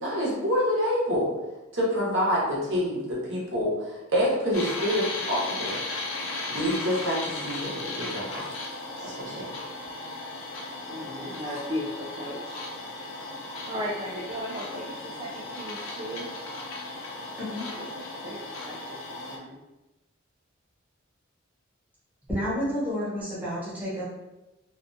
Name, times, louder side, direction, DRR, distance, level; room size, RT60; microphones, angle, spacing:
voice 1, 0.0-1.3 1.7-5.8 6.5-8.4 9.0-9.5, equal, 70° right, -5 dB, 0.9 m, -27 dB
sound 1, 4.5-19.4, left 2 dB, 80° left, 0.5 m, -36 dB
voice 2, 10.9-12.7 13.7-16.3 17.7-19.0 19.3-19.6, equal, 25° right, -6 dB, 0.3 m, -36 dB
voice 3, 22.3-24.0, equal, 10° right, -8 dB, 0.8 m, -30 dB
2.4 x 2.2 x 2.6 m, 0.98 s
head